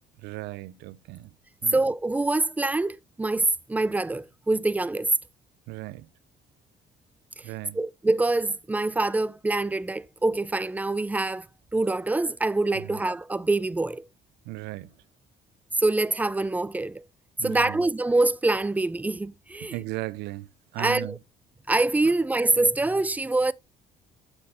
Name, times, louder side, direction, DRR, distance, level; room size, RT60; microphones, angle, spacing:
voice 1, 0.2-1.3 1.6-1.8 5.7-6.1 7.4-7.8 12.7-13.0 14.5-14.9 17.4-17.9 19.6-21.2 22.0-22.1, right 20 dB, 90° right, 0.5 m, -36 dB
voice 2, 1.7-5.1 7.7-11.5 11.7-14.0 15.8-17.0 17.4-19.7 20.8-21.2 21.7-23.5, right 2 dB, 10° right, 0.3 m, -25 dB
9.7 x 4.4 x 4.2 m
cardioid pair, 110°, 17 cm